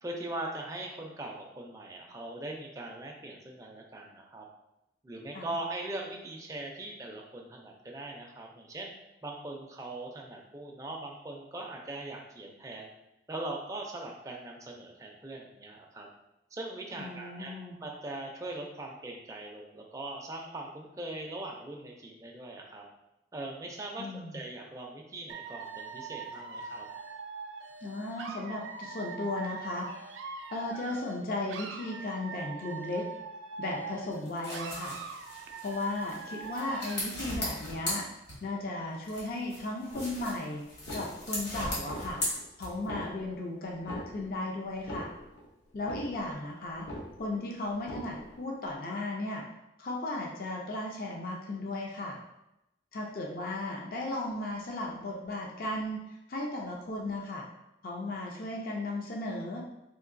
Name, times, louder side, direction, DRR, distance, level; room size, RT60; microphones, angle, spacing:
voice 1, 0.0-4.4 5.0-8.9 9.2-12.9 13.3-16.1 16.5-17.5 17.8-22.8 23.3-26.9, right 2 dB, 15° right, 0 dB, 0.4 m, -41 dB
voice 2, 17.0-17.8 24.0-24.4 27.8-30.2 30.5-33.1 33.6-35.0 35.6-38.1 38.4-40.6 40.9-42.2 42.6-45.1 45.7-46.9 47.2-49.4 49.8-52.2 52.9-56.0 56.3-57.5 57.8-59.6, left 2 dB, 50° left, 0 dB, 0.4 m, -35 dB
Dog / Alarm, 25.3-31.2 31.5-34.2 34.5-37.2, right 5 dB, 85° right, 0.4 m, -42 dB
sound 1, 34.1-38.7 39.0-43.0, left 1 dB, 65° left, 1.3 m, -38 dB
sound 2, 39.9-40.4 40.7-41.5 41.8-42.5 42.7-43.4 43.8-44.4 44.7-45.5 45.7-46.5 46.7-47.4 47.8-48.4, equal, 85° left, 0.7 m, -42 dB
3.7 x 2.6 x 2.5 m, 0.88 s
head